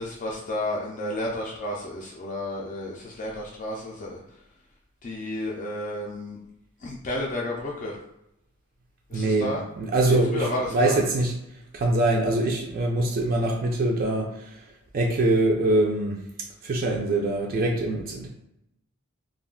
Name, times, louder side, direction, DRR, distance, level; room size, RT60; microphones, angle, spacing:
voice 1, 0.0-4.4 5.0-6.4 6.8-8.0 9.1-9.6 10.1-11.0, left 1 dB, 35° left, -3 dB, 0.4 m, -32 dB
voice 2, 9.1-9.5 9.8-10.5 10.7-11.3 11.7-14.6 14.9-16.2 16.6-18.3, right 2 dB, 45° right, 0 dB, 0.4 m, -23 dB
2.4 x 2.2 x 3.6 m, 0.84 s
head